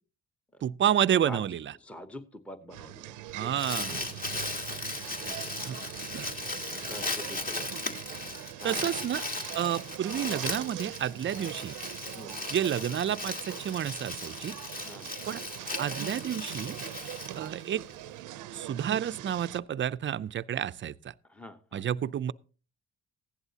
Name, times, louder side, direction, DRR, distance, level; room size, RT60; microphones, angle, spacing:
voice 1, 0.6-1.7 3.3-4.0 5.6-5.8 6.1-6.3 8.6-9.3 9.5-11.7 12.5-14.6 15.3-15.4 15.8-16.8 17.4-17.8 18.5-21.1 21.7-22.3, right 10 dB, 40° right, 0.5 m, -30 dB
voice 2, 1.8-3.5 3.9-4.1 5.2-5.5 6.6-7.7 8.6-9.0 12.1-12.4 14.8-15.1 21.3-21.8, left 1 dB, 5° left, 0.9 m, -45 dB
sound 1, 2.7-19.6, right 14 dB, 85° right, 0.6 m, -42 dB
Crumpling crinkling, 3.3-17.9, left 2 dB, 30° left, 1.7 m, -37 dB
15.5 x 11.0 x 2.8 m
cardioid pair, 90°, 30 cm